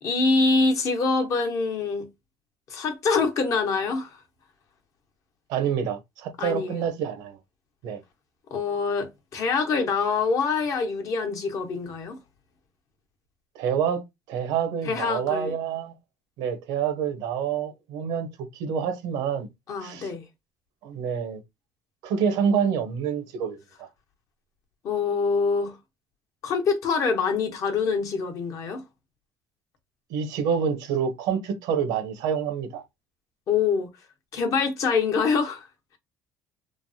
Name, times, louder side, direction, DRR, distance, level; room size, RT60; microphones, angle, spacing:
voice 1, 0.0-2.1 2.7-4.2 6.4-6.8 8.5-12.2 14.9-15.5 19.7-20.2 24.8-25.8 26.4-28.8 33.5-33.9 34.3-35.7, left 4 dB, 55° left, 0.9 m, -25 dB
voice 2, 5.5-7.4 7.8-8.0 13.5-14.0 14.3-15.9 16.4-19.5 19.8-20.1 20.8-21.4 22.0-23.9 30.1-32.8, right 7 dB, 85° right, 0.8 m, -27 dB
3.2 x 2.0 x 2.7 m
cardioid pair, 125°, 7 cm